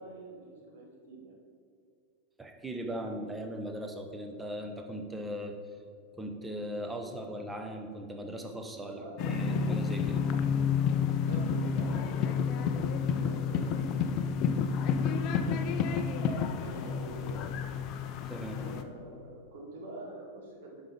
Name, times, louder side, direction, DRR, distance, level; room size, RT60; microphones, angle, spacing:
voice 1, 0.0-1.4 8.9-9.4 11.2-13.9 15.0-15.8 16.6-17.4 18.6-20.8, right 2 dB, 55° right, -1 dB, 1.8 m, -47 dB
voice 2, 2.4-5.5 6.2-9.0 9.3-10.2 18.3-18.6, equal, 10° right, 4 dB, 0.9 m, -39 dB
sound 1, 9.2-18.8, left 6 dB, 40° left, 0.5 m, -30 dB
7.5 x 5.7 x 5.1 m, 2.3 s
figure-of-eight pair, 90°, 0 cm